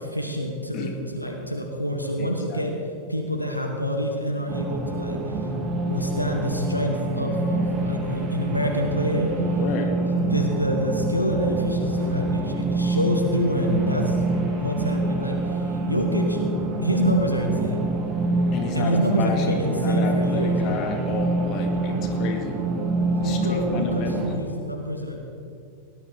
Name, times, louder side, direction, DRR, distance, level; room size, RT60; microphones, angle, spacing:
voice 1, 0.0-2.8 3.1-5.5 5.8-9.6 10.0-16.4 16.8-17.9 18.7-20.6 22.0-22.1 23.1-25.4, equal, 90° left, 1 dB, 1.5 m, -27 dB
voice 2, 2.2-2.6 9.6-9.9 18.5-22.6 23.2-24.3, left 4 dB, 40° left, 3 dB, 2.1 m, -30 dB
sound 1, 4.5-24.4, right 2 dB, 30° right, 2.1 m, -26 dB
18.0 x 11.0 x 5.0 m, 2.5 s
figure-of-eight pair, 90°, 0 cm